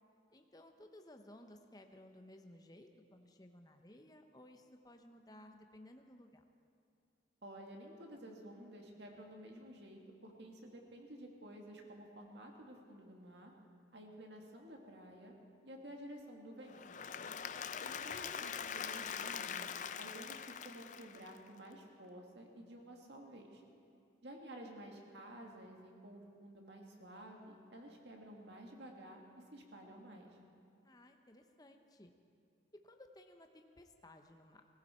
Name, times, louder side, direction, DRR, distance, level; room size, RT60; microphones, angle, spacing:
voice 1, 0.3-6.4 17.2-17.8 30.8-32.1 32.8-34.7, left 1 dB, 20° left, 5 dB, 0.8 m, -58 dB
voice 2, 7.4-13.5 13.9-15.3 15.6-16.8 17.8-23.6 24.2-29.2 29.5-30.3, right 1 dB, 65° right, 1 dB, 2.0 m, -52 dB
Applause / Crowd, 16.7-21.7, left 7 dB, 40° left, 0.4 m, -43 dB
18.0 x 16.0 x 4.4 m, 2.3 s
head